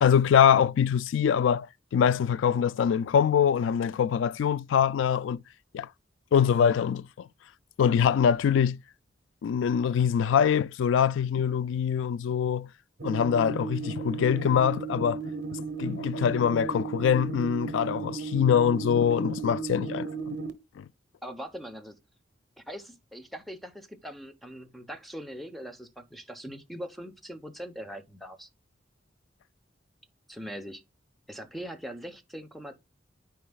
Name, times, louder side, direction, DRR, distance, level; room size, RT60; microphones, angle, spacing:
voice 1, 0.0-1.7 1.9-5.4 5.7-5.9 6.3-7.3 7.8-8.8 9.4-12.7 13.0-15.2 15.5-20.3 20.8-20.9, left 8 dB, 80° left, 0.3 m, -24 dB
sound 1, 13.0-20.5, right 4 dB, 60° right, 1.1 m, -35 dB
voice 2, 21.2-22.0 22.6-28.5 30.3-30.8 31.3-32.7, equal, ahead, 0.8 m, -41 dB
13.0 x 4.7 x 2.3 m
head